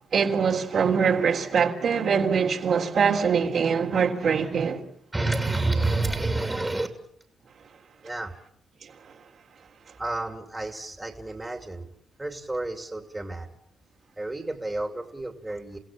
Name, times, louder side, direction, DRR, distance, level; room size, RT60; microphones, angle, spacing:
voice 1, 0.1-4.8 8.8-8.9, right 6 dB, 65° right, 3.5 m, -23 dB
voice 2, 5.1-6.9 8.0-8.3 10.0-11.9 12.2-13.5 14.2-15.8, right 2 dB, 15° right, 2.7 m, -29 dB
29.5 x 16.0 x 7.4 m
supercardioid pair, 60°, 0 cm